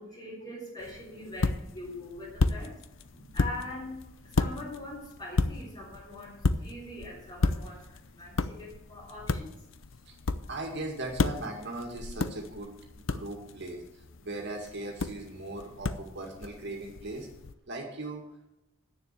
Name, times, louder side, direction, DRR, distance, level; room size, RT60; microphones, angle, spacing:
voice 1, 0.0-2.8 3.1-4.0 4.2-9.7, left 2 dB, 25° left, -8 dB, 3.5 m, -42 dB
sound 1, 0.8-17.5, left 3 dB, 70° left, 0.6 m, -34 dB
voice 2, 10.5-12.7 13.1-13.8 14.2-17.3 17.7-18.2, right 2 dB, 55° right, 0 dB, 2.1 m, -38 dB
9.6 x 7.1 x 8.9 m, 0.91 s
head